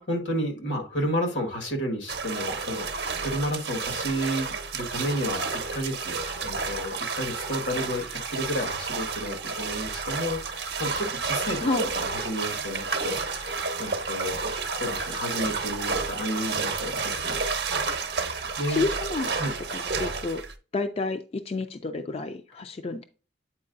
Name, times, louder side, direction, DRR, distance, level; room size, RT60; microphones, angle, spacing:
voice 1, 0.0-2.9 3.2-5.4 5.7-11.6 11.9-17.4 18.6-18.8 19.3-19.5, equal, 85° left, 1.6 m, -31 dB
sound 1, 2.1-20.5, right 4 dB, 60° right, 0.7 m, -31 dB
voice 2, 18.7-19.3 19.7-20.4 20.7-23.0, left 3 dB, 35° left, 0.3 m, -30 dB
8.5 x 4.5 x 2.5 m
head